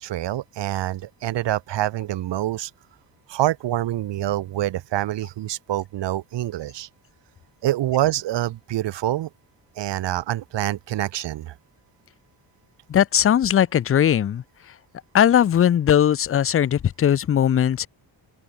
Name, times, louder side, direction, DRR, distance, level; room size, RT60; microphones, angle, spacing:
voice 1, 0.0-2.7 3.3-6.9 7.6-9.3 9.8-11.5, right 14 dB, 65° right, 0.8 m, -26 dB
voice 2, 12.9-14.4 15.1-17.9, left 10 dB, 30° left, 0.4 m, -19 dB
open air
wide cardioid pair, 155°, 46 cm